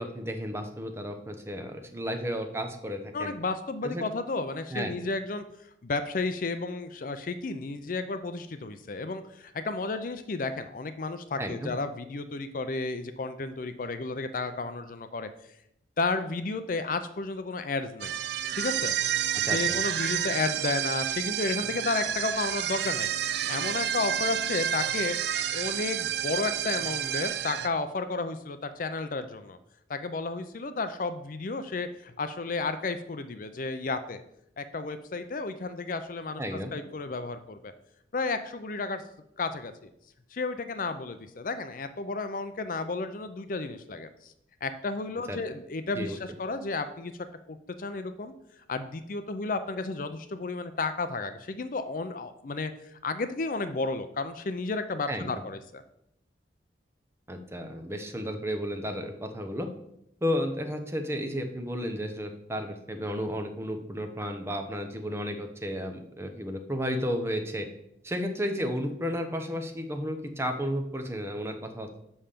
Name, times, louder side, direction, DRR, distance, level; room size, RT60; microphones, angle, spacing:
voice 1, 0.0-3.3 3.8-4.0 4.7-4.9 11.4-11.7 19.4-19.8 36.4-36.7 45.3-45.4 45.9-46.2 55.1-55.3 57.3-59.7 60.2-67.7 68.0-72.0, equal, 15° right, 5 dB, 0.8 m, -33 dB
voice 2, 3.1-5.4 5.8-15.3 16.0-18.1 18.5-18.9 19.4-23.1 23.5-29.6 29.9-34.2 34.6-37.7 38.1-39.0 39.4-39.9 40.3-44.3 44.6-47.1 47.5-48.3 48.7-55.8, left 3 dB, 45° left, 10 dB, 0.5 m, -32 dB
sound 1, 18.0-27.7, right 10 dB, 65° right, 0.4 m, -30 dB
5.7 x 5.5 x 6.7 m, 0.77 s
head